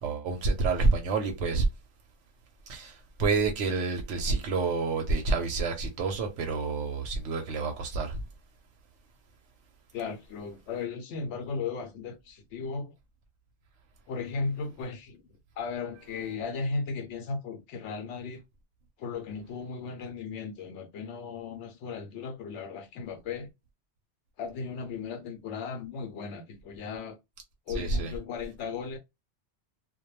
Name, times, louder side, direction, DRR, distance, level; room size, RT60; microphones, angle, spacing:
voice 1, 0.0-1.6 2.7-2.9 3.2-8.2 27.8-28.1, right 3 dB, 90° right, 0.9 m, -28 dB
voice 2, 9.9-12.9 14.1-15.2 15.6-18.4 19.0-23.5 24.4-27.2 27.7-29.0, left 4 dB, 85° left, 0.9 m, -36 dB
2.2 x 2.2 x 3.0 m
omnidirectional pair, 1.2 m